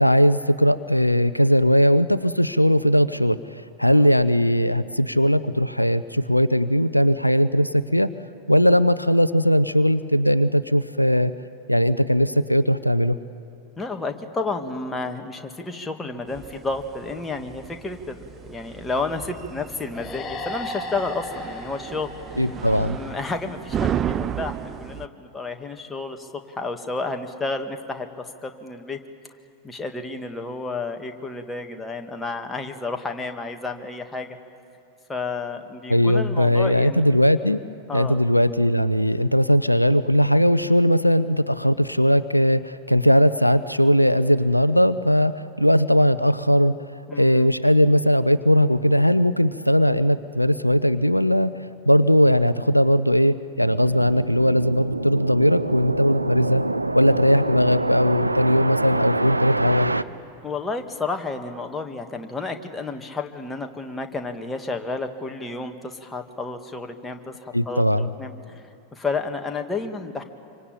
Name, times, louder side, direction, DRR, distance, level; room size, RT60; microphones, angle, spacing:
voice 1, 0.0-8.1 8.5-11.3 11.7-13.2 22.4-23.0 35.9-37.6 37.9-46.7 47.1-51.5 51.9-56.6 56.9-59.9 67.5-68.1, equal, 90° left, 14 dB, 0.6 m, -19 dB
voice 2, 13.8-22.5 22.9-28.1 28.4-29.0 29.6-34.4 35.1-37.0 37.9-38.2 47.1-47.5 60.4-68.6 68.9-70.2, left 3 dB, 10° left, 4 dB, 1.9 m, -31 dB
sound 1, 16.3-25.1, right 9 dB, 25° right, 0.6 m, -33 dB
sound 2, 19.9-23.4, left 2 dB, 25° left, 7.4 m, -36 dB
sound 3, 53.6-60.0, right 2 dB, 85° right, 0.6 m, -26 dB
26.0 x 24.5 x 8.8 m, 2.5 s
figure-of-eight pair, 90°, 0 cm